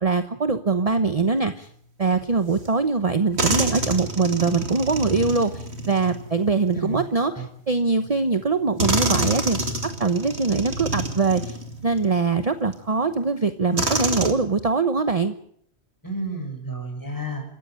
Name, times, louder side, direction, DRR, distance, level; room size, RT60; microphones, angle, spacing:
voice 1, 0.0-1.7 2.0-11.6 11.8-15.3, right 4 dB, 35° right, 9 dB, 1.1 m, -23 dB
sound 1, 2.7-2.8 3.4-7.0 8.0-8.1 8.8-12.1 12.7-12.8 13.8-14.3, right 2 dB, 70° right, 2.7 m, -27 dB
voice 2, 6.7-7.4 16.0-17.4, right 1 dB, 15° left, 3 dB, 6.4 m, -32 dB
27.0 x 14.5 x 9.0 m, 0.67 s
omnidirectional pair, 1.1 m